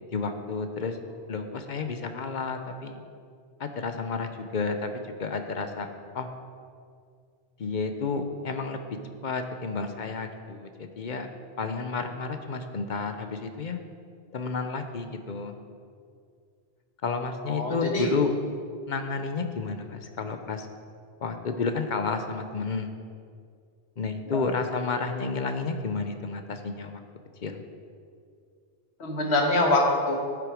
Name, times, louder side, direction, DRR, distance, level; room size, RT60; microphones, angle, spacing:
voice 1, 0.1-1.0 1.3-3.0 3.6-5.9 6.1-6.3 7.6-8.8 9.2-11.3 11.6-13.8 14.3-15.6 17.0-18.3 18.9-20.7 21.2-22.9 24.0-27.0 27.4-27.6, left 4 dB, 50° left, 7 dB, 0.8 m, -31 dB
voice 2, 17.5-18.1 24.3-24.5 29.0-30.2, left 2 dB, 80° left, 0 dB, 1.6 m, -24 dB
9.5 x 7.9 x 5.0 m, 2.2 s
omnidirectional pair, 1.1 m